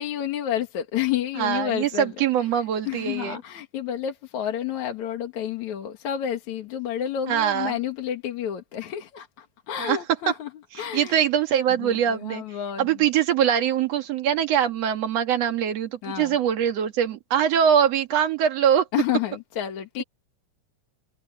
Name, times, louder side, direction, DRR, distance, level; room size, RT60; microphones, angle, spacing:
voice 1, 0.0-2.1 2.9-10.5 10.8-11.2 11.8-12.9 16.0-16.4 18.9-20.0, left 10 dB, 65° left, 3.0 m, -30 dB
voice 2, 1.4-3.4 7.3-7.8 9.8-10.0 10.9-12.4 12.8-18.9, right 9 dB, 55° right, 2.6 m, -23 dB
omnidirectional pair, 3.8 m